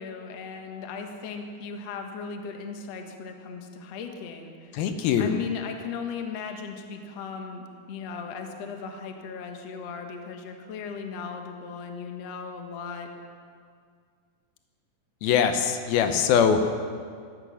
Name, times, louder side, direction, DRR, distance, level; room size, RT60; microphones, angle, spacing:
voice 1, 0.0-4.7 5.2-13.1, left 5 dB, 55° left, 4 dB, 1.9 m, -37 dB
voice 2, 4.7-5.4 15.2-16.7, left 7 dB, 80° left, 7 dB, 2.6 m, -22 dB
16.5 x 13.5 x 6.3 m, 2.1 s
omnidirectional pair, 4.4 m